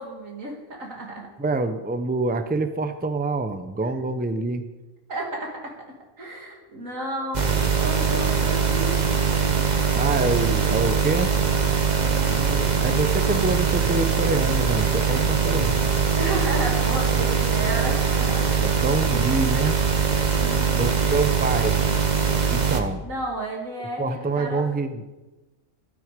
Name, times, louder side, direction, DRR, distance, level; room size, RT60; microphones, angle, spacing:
voice 1, 0.0-1.3 5.1-5.7 6.2-9.0 12.0-12.7 16.2-18.6 20.3-21.0 23.0-24.6, right 1 dB, 90° right, -1 dB, 3.2 m, -32 dB
voice 2, 1.4-4.7 9.9-11.3 12.3-15.9 18.6-19.8 20.8-21.8 22.5-23.0 24.0-25.0, right 3 dB, 10° right, 8 dB, 0.6 m, -26 dB
sound 1, 7.3-22.8, right 7 dB, 35° right, 1.1 m, -22 dB
13.0 x 12.0 x 5.2 m, 1.1 s
omnidirectional pair, 1.3 m